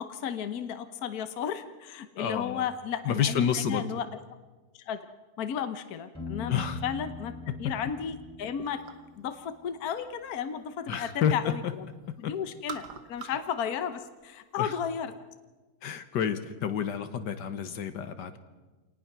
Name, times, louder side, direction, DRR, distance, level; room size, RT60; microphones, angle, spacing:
voice 1, 0.0-4.0 4.7-5.0 5.4-6.5 6.8-7.3 7.6-8.8 9.2-11.6 12.2-15.1, left 8 dB, 60° left, 10 dB, 1.4 m, -34 dB
voice 2, 2.2-2.6 3.0-3.8 6.5-6.8 10.9-11.7 12.1-12.3 13.2-13.4 14.6-14.7 15.8-18.4, left 8 dB, 75° left, 10 dB, 1.7 m, -29 dB
Piano, 6.1-9.8, left 4 dB, 5° left, 3.7 m, -42 dB
sound 1, 8.6-9.2 9.6-11.2 11.5-12.1 12.4-13.5 13.8-14.6, right 7 dB, 70° right, 1.7 m, -45 dB
27.0 x 19.0 x 6.1 m, 1.2 s
omnidirectional pair, 1.9 m